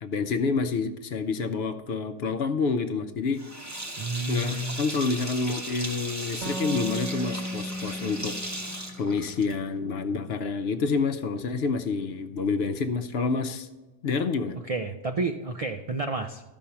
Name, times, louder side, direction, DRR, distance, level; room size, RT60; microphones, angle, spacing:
voice 1, 0.0-3.8 4.3-8.3 9.0-13.7 14.0-14.6, left 4 dB, 60° left, 8 dB, 0.8 m, -28 dB
Sink (filling or washing), 3.4-9.8, right 1 dB, 15° right, 0.9 m, -37 dB
voice 2, 4.0-4.8 14.7-16.5, right 2 dB, 60° right, 6 dB, 0.3 m, -30 dB
sound 1, 6.4-9.9, equal, 40° right, 0.9 m, -36 dB
13.0 x 5.4 x 5.7 m, 1.2 s
omnidirectional pair, 1.3 m